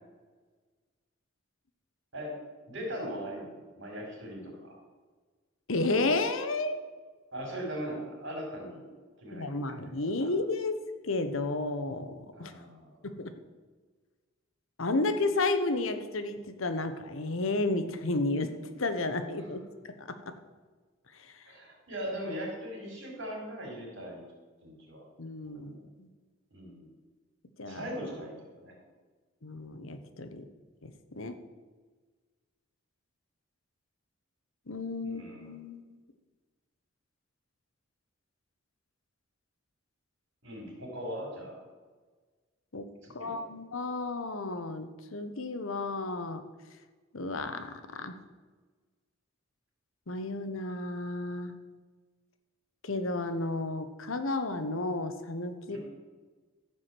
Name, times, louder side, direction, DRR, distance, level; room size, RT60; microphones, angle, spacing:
voice 1, 2.7-4.8 7.3-8.9 9.2-9.9 10.2-10.3 12.3-13.0 19.4-19.5 21.4-24.2 24.6-25.0 25.4-25.8 26.5-26.9 27.6-28.8 35.0-35.6 40.4-41.6 43.0-43.5 55.7-55.8, equal, 60° right, -1 dB, 4.4 m, -40 dB
voice 2, 5.7-6.9 9.3-10.8 11.0-12.5 13.0-13.3 14.8-20.3 21.2-21.3 25.2-26.1 27.6-27.8 29.4-30.5 30.8-31.4 34.7-35.8 42.7-42.9 43.1-46.4 47.1-48.1 50.1-51.5 52.8-55.8, left 2 dB, 80° left, 9 dB, 1.0 m, -32 dB
14.0 x 4.9 x 7.7 m, 1.4 s
head